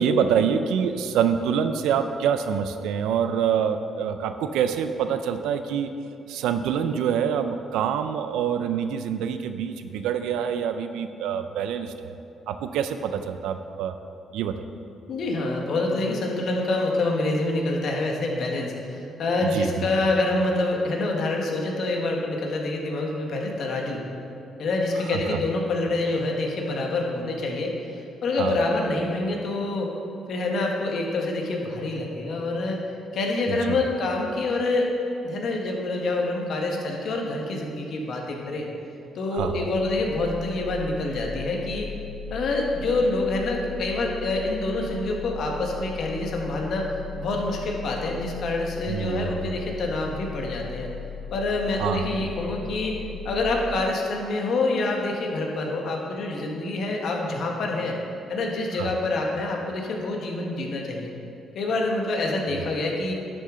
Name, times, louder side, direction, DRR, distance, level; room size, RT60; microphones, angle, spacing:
voice 1, 0.0-5.9 6.3-12.2 12.5-13.9 14.3-14.6 19.5-19.9 25.1-25.4 28.4-28.5 33.5-33.8 39.3-39.5 48.9-49.5 51.8-52.3 58.8-58.9, right 7 dB, 90° right, 9 dB, 0.4 m, -26 dB
voice 2, 15.1-24.0 24.6-27.8 28.2-30.0 30.3-32.8 33.1-34.9 35.2-38.7 39.1-41.9 42.3-46.9 47.2-50.9 51.3-53.0 53.2-58.0 58.3-61.1 61.5-63.1, left 2 dB, 65° left, 0 dB, 1.4 m, -26 dB
sound 1, 39.4-53.5, left 7 dB, ahead, 1.5 m, -38 dB
11.0 x 6.4 x 3.8 m, 2.7 s
cardioid pair, 90°, 0 cm